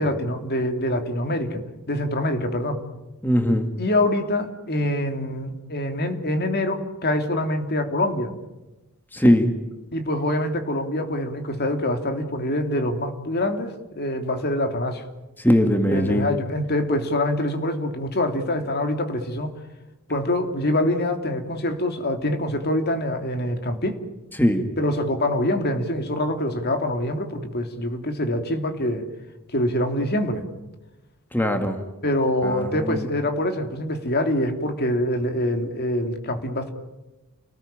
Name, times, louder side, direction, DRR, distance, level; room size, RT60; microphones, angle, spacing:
voice 1, 0.0-1.6 1.9-2.8 3.8-8.3 9.2-9.4 9.9-15.0 15.9-19.5 20.1-24.0 24.8-29.0 29.5-30.4 32.0-36.7, left 1 dB, 50° left, 6 dB, 3.0 m, -25 dB
voice 2, 3.2-3.7 9.1-9.5 15.4-16.3 24.4-24.7 31.3-31.8 32.4-33.0, equal, 10° left, 6 dB, 2.1 m, -20 dB
29.5 x 20.0 x 9.0 m, 1.0 s
head